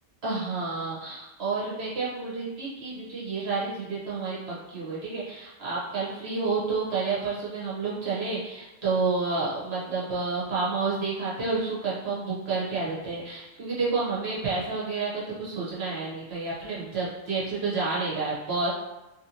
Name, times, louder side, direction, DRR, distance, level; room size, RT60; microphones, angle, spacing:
voice 1, 0.2-18.7, right 4 dB, 55° right, -7 dB, 1.2 m, -30 dB
3.2 x 2.7 x 2.8 m, 1.0 s
omnidirectional pair, 1.3 m